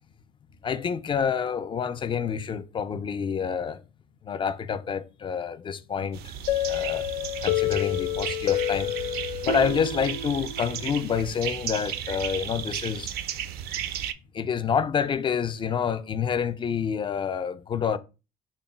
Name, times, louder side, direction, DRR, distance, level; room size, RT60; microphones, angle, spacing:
voice 1, 0.6-3.8 4.2-6.3 6.7-7.1 7.4-8.9 9.4-13.1 14.3-18.0, left 7 dB, 30° left, 0.3 m, -28 dB
sound 1, 6.1-14.1, right 9 dB, 70° right, 0.4 m, -34 dB
sound 2, 6.5-11.2, left 10 dB, 85° left, 0.5 m, -29 dB
3.8 x 2.1 x 4.1 m
cardioid pair, 110°, 17 cm